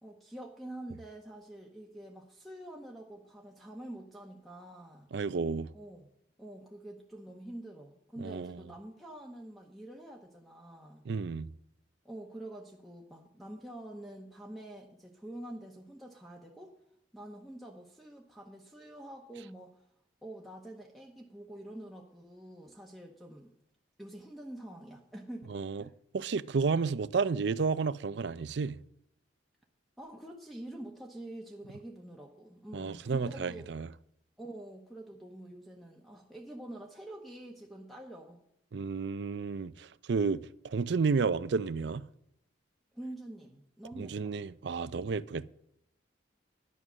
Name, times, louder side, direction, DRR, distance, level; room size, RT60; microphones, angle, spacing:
voice 1, 0.0-5.1 5.7-6.1 6.4-11.1 12.0-16.7 17.1-19.8 20.2-23.5 24.0-25.9 30.0-33.7 34.4-38.4 42.9-44.4, right 1 dB, ahead, 1.0 m, -46 dB
voice 2, 5.1-5.7 8.2-8.6 11.1-11.5 25.5-25.8 26.1-28.8 32.7-33.9 38.7-42.1 43.9-45.5, right 4 dB, 65° right, 0.4 m, -31 dB
11.0 x 9.6 x 6.2 m
head